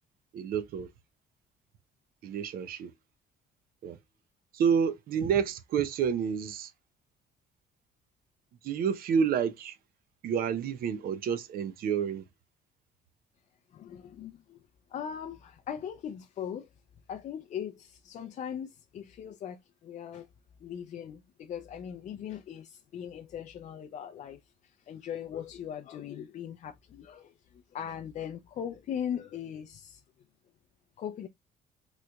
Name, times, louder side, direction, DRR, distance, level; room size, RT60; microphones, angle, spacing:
voice 1, 0.3-0.9 2.2-2.9 3.8-4.0 4.5-6.7 8.6-9.8 10.2-12.2, right 7 dB, 60° right, 0.6 m, -29 dB
voice 2, 13.7-14.6 14.9-16.7 17.1-20.3 20.6-30.0 31.0-31.3, left 9 dB, 45° left, 0.4 m, -39 dB
3.9 x 3.0 x 2.3 m
cardioid pair, 110°, 17 cm